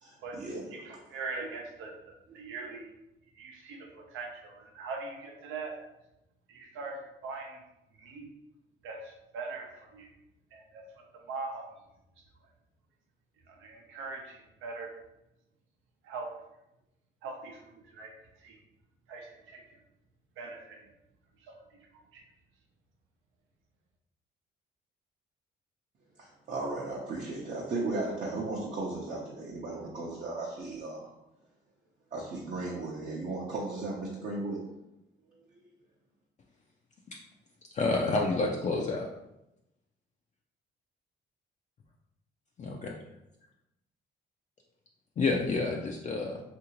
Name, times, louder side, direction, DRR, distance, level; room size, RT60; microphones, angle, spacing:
voice 1, 0.0-0.7 26.2-31.1 32.1-34.6 35.3-35.7, right 2 dB, 45° right, -4 dB, 0.6 m, -36 dB
voice 2, 0.7-2.9 3.3-5.8 6.5-7.6 8.0-8.3 8.8-10.1 10.5-10.8 11.1-11.6 13.5-15.0 16.0-16.4 17.2-18.1 18.4-18.6 19.1-19.8 20.4-20.9 21.4-21.6 22.1-22.2, right 3 dB, 85° right, 1 dB, 0.7 m, -41 dB
voice 3, 37.7-39.0 42.6-42.9 45.2-46.4, left 3 dB, 35° left, 0 dB, 0.4 m, -29 dB
2.7 x 2.6 x 2.9 m, 0.88 s
cardioid pair, 90°, 20 cm